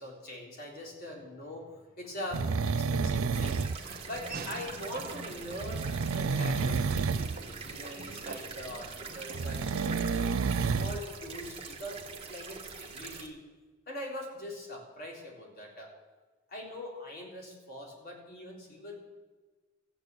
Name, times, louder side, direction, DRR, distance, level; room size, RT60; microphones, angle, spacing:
voice 1, 0.0-5.8 6.1-10.2 10.6-13.4 13.9-15.9 16.5-18.9, left 1 dB, 50° left, -2 dB, 3.8 m, -43 dB
sound 1, 2.3-3.8 5.6-7.4 9.3-11.0 11.4-11.5, right 4 dB, 80° right, 0.5 m, -30 dB
sound 2, 3.3-13.3, right 5 dB, 30° right, 1.7 m, -44 dB
Laughter / Walk footsteps, 3.3-10.8, right 3 dB, 45° right, 1.0 m, -46 dB
14.5 x 8.6 x 8.2 m, 1.3 s
head